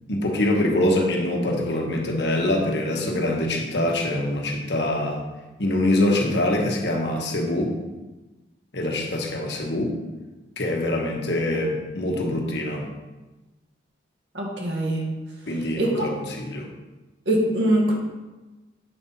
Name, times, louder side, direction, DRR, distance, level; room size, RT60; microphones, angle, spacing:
voice 1, 0.1-5.2 5.6-7.8 8.7-10.0 10.6-12.9 15.5-16.7, left 1 dB, 75° left, 1 dB, 1.3 m, -24 dB
voice 2, 14.3-15.2 15.8-16.2 17.3-17.9, right 1 dB, 80° right, -2 dB, 1.8 m, -23 dB
7.7 x 5.5 x 4.2 m, 1.1 s
head